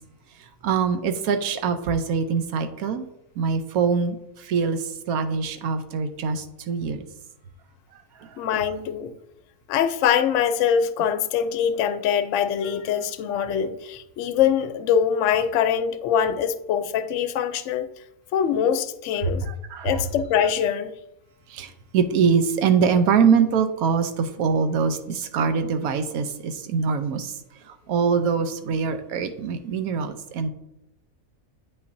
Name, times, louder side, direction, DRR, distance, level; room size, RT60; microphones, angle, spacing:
voice 1, 0.6-3.1 3.4-4.2 4.5-4.8 5.1-7.0 19.7-19.9 21.5-27.3 27.9-30.5, right 6 dB, 90° right, 1.1 m, -23 dB
voice 2, 8.4-9.1 9.7-17.9 18.3-19.4 19.8-20.9, left 8 dB, 65° left, 0.8 m, -23 dB
8.5 x 5.6 x 2.6 m
omnidirectional pair, 1.5 m